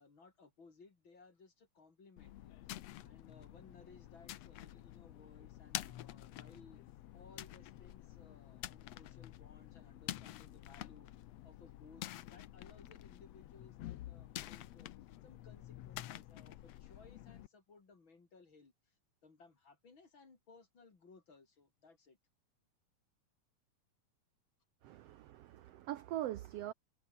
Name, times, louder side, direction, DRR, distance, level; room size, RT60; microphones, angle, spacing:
voice 1, 0.0-11.1 11.4-14.9 15.2-18.9 19.2-22.2, left 4 dB, 35° left, 3.9 m, -62 dB
sound 1, 2.2-17.5, left 14 dB, 70° left, 1.7 m, -49 dB
voice 2, 24.8-26.7, right 13 dB, 80° right, 1.4 m, -42 dB
omnidirectional pair, 3.8 m